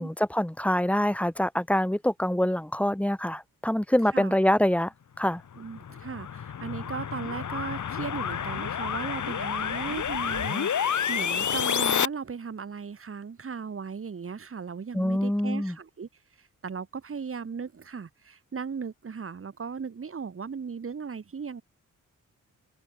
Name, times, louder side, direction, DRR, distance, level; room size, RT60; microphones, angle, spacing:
voice 1, 0.0-4.9 5.2-5.4 14.9-15.8, left 1 dB, 5° left, 6.7 m, -25 dB
sound 1, 5.5-12.1, left 8 dB, 65° left, 6.9 m, -29 dB
voice 2, 5.6-16.1 16.6-21.6, right 6 dB, 45° right, 7.4 m, -37 dB
open air
wide cardioid pair, 155°, 32 cm